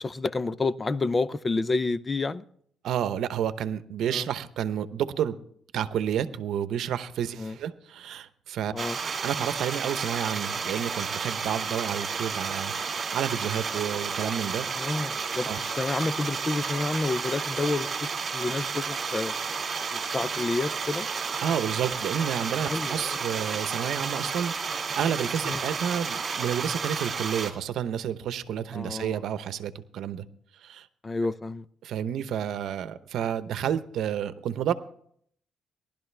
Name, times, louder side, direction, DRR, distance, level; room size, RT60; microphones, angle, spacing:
voice 1, 0.0-2.4 4.1-4.3 7.4-7.6 8.7-9.0 14.7-19.3 19.9-21.1 22.7-23.2 25.5-25.6 28.7-29.2 31.0-31.6, left 3 dB, 25° left, 0.6 m, -29 dB
voice 2, 2.8-5.4 5.7-8.7 9.2-14.7 15.5-15.6 21.4-30.2 30.6-30.9 31.8-34.7, right 9 dB, 75° right, 0.9 m, -30 dB
sound 1, 8.8-27.5, right 5 dB, 40° right, 2.2 m, -32 dB
19.0 x 12.0 x 3.4 m
cardioid pair, 100°, 0 cm